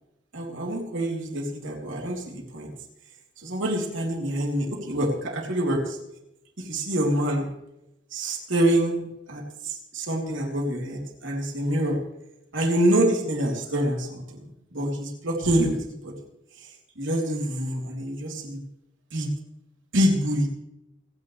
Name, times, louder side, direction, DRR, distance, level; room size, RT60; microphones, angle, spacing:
voice 1, 0.3-2.7 3.4-6.0 6.6-7.5 8.1-12.0 12.5-14.4 14.7-15.8 16.0-16.1 16.9-18.6 19.1-19.3 19.9-20.5, right 1 dB, 75° right, 0 dB, 3.4 m, -26 dB
29.0 x 9.7 x 3.3 m, 0.87 s
head